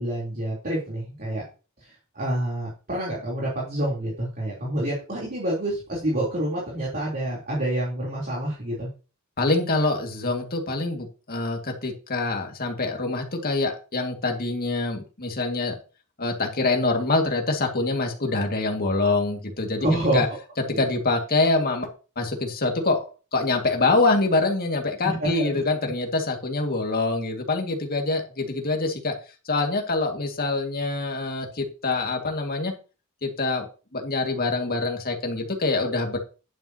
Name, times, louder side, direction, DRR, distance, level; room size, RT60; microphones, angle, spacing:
voice 1, 0.0-1.4 1.8-8.9 19.8-20.2 20.7-20.8 25.0-25.6, right 1 dB, 40° right, -5 dB, 3.6 m, -27 dB
voice 2, 9.4-15.8 16.2-19.9 20.1-20.3 20.7-21.9 22.2-29.1 29.5-32.7 33.2-33.6 33.9-36.2, left 3 dB, 45° left, 2 dB, 2.1 m, -25 dB
11.0 x 9.4 x 2.9 m, 0.34 s
head